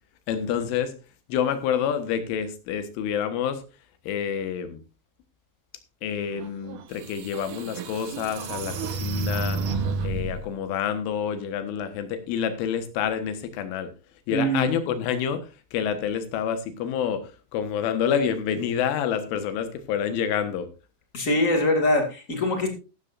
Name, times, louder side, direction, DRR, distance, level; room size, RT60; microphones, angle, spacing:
voice 1, 0.3-0.9 1.3-3.6 4.1-4.8 6.0-9.6 10.0-13.9 14.3-20.7, left 8 dB, 90° left, 9 dB, 3.9 m, -28 dB
sound 1, 6.7-6.8 7.3-10.5, right 3 dB, 75° right, 1.8 m, -30 dB
voice 2, 14.3-14.7 21.1-22.7, left 1 dB, 30° left, 4 dB, 1.6 m, -23 dB
14.5 x 13.0 x 2.6 m, 0.31 s
omnidirectional pair, 5.4 m